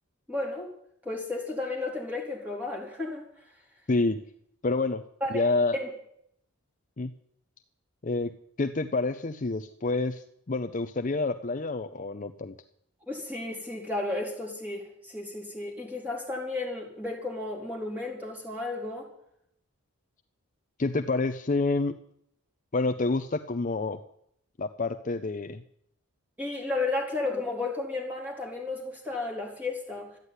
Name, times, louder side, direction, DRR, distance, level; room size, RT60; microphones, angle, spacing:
voice 1, 0.3-0.7 1.0-3.2 5.2-5.4 5.7-5.9 13.1-19.1 26.4-30.1, left 2 dB, 5° right, -2 dB, 4.2 m, -33 dB
voice 2, 3.9-4.2 4.6-5.0 5.3-5.8 7.0-7.1 8.0-12.5 20.8-21.9 22.7-24.0 24.6-25.6, left 3 dB, 35° left, 9 dB, 0.6 m, -28 dB
13.5 x 9.5 x 9.8 m, 0.71 s
head